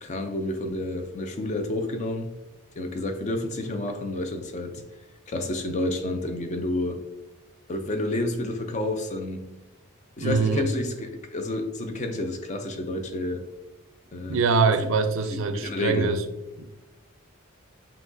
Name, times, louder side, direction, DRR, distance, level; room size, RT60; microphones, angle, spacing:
voice 1, 0.0-2.3 2.8-4.7 5.3-7.0 7.7-9.5 10.2-13.4 14.1-14.4 15.3-16.2, left 1 dB, 35° left, 6 dB, 0.4 m, -29 dB
voice 2, 10.2-10.7 14.3-16.2 16.6-16.7, right 4 dB, 65° right, 9 dB, 0.4 m, -23 dB
5.7 x 2.9 x 2.6 m, 0.98 s
head